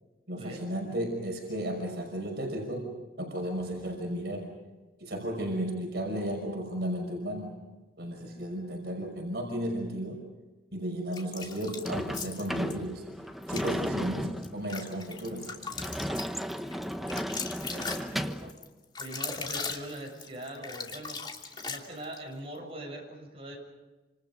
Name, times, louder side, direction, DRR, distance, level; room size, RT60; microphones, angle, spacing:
voice 1, 0.3-2.9 3.2-4.5 5.0-7.5 8.0-10.2 10.7-13.0 13.5-15.5, right 1 dB, 65° right, 2 dB, 5.7 m, -34 dB
sound 1, 11.1-12.8 13.4-13.7 14.2-22.2, left 5 dB, 25° left, 2.8 m, -39 dB
Sliding door / Slam, 11.8-18.5, equal, ahead, 1.1 m, -35 dB
voice 2, 17.7-18.5 19.0-21.2 21.7-23.6, right 1 dB, 35° right, 1 dB, 7.9 m, -42 dB
29.5 x 27.5 x 5.4 m, 1.2 s
head